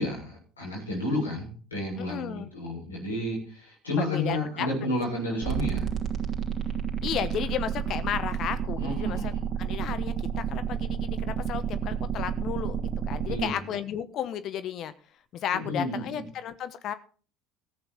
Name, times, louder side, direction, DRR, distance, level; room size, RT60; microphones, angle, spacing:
voice 1, 0.0-5.9 8.8-9.3 13.3-13.5 15.5-16.2, left 1 dB, 90° left, -3 dB, 7.3 m, -31 dB
voice 2, 2.0-2.5 4.0-4.7 7.0-9.3 9.6-14.9 15.3-16.9, left 9 dB, 50° left, 13 dB, 1.1 m, -33 dB
sound 1, 5.4-13.4, right 8 dB, 40° right, 2.8 m, -30 dB
14.5 x 8.5 x 5.8 m, 0.40 s
hypercardioid pair, 65°, 0 cm